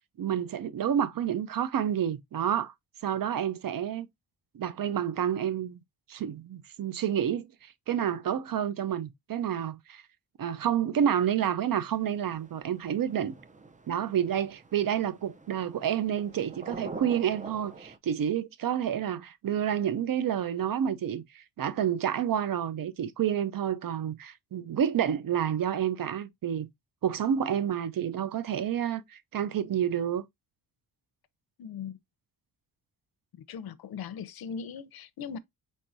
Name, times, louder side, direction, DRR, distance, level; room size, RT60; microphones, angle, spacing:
voice 1, 0.2-2.7 3.0-4.1 4.5-5.8 6.1-10.0 10.4-13.3 13.9-26.7 27.0-30.2, right 9 dB, 60° right, 0.7 m, -29 dB
sound 1, 11.7-18.0, right 3 dB, 20° right, 0.5 m, -46 dB
voice 2, 31.6-32.0 33.3-35.4, left 7 dB, 70° left, 0.7 m, -39 dB
4.6 x 4.3 x 2.6 m
cardioid pair, 95°, 37 cm